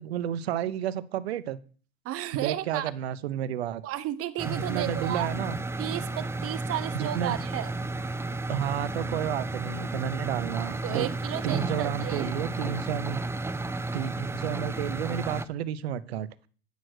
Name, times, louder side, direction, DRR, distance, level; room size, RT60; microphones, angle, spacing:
voice 1, 0.0-1.6 2.4-3.8 4.5-5.6 6.9-7.4 8.5-11.1 11.4-13.2 13.9-16.3, right 10 dB, 90° right, 17 dB, 0.7 m, -31 dB
voice 2, 2.0-2.9 3.8-5.3 5.8-7.7 10.8-12.4, right 13 dB, 50° right, 14 dB, 1.0 m, -33 dB
sound 1, 4.4-15.5, right 2 dB, 10° right, 0.5 m, -32 dB
9.3 x 6.5 x 6.2 m, 0.41 s
hypercardioid pair, 90°, 30 cm